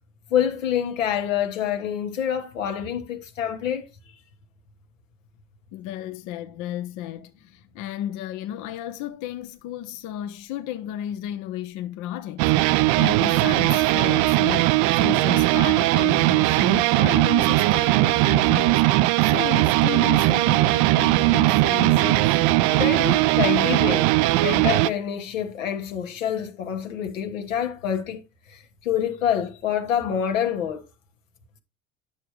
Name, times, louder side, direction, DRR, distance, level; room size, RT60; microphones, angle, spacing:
voice 1, 0.3-3.9 22.7-24.1 24.4-28.2 28.5-30.8, left 9 dB, 80° left, 1.4 m, -26 dB
voice 2, 5.7-22.4, left 12 dB, 50° left, 0.7 m, -33 dB
sound 1, 12.4-24.9, right 18 dB, 55° right, 0.5 m, -19 dB
9.7 x 6.7 x 3.0 m
hypercardioid pair, 75°, 38 cm